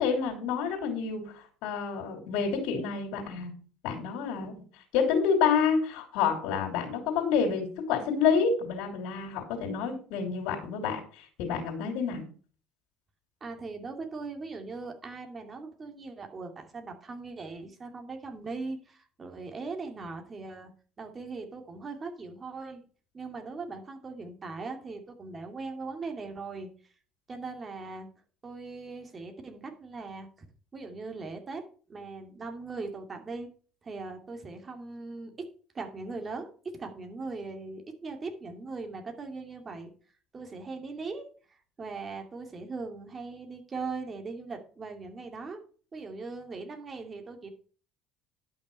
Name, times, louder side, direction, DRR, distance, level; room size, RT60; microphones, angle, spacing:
voice 1, 0.0-3.5 3.8-12.2, left 6 dB, 80° left, 1 dB, 3.3 m, -28 dB
voice 2, 13.4-20.7 21.0-22.8 23.1-26.7 27.3-28.1 28.4-30.3 30.7-31.6 31.9-33.5 33.8-35.5 35.7-39.9 40.3-45.6 45.9-47.5, right 3 dB, 30° right, 5 dB, 2.5 m, -39 dB
11.0 x 5.9 x 5.5 m, 0.40 s
supercardioid pair, 100°, 0 cm